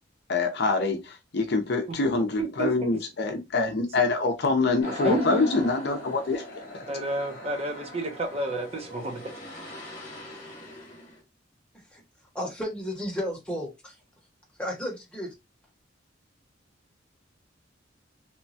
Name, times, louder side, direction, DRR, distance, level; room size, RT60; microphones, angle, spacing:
voice 1, 0.3-6.4 6.7-6.8, left 3 dB, 60° left, 0.6 m, -25 dB
voice 2, 2.4-3.0 4.8-5.6 6.9-9.2, right 1 dB, 35° right, 0.6 m, -30 dB
sound 1, 4.8-11.2, left 1 dB, 40° left, 1.1 m, -41 dB
voice 3, 12.3-14.0 14.6-15.3, equal, 5° left, 0.8 m, -33 dB
3.0 x 2.2 x 2.6 m
head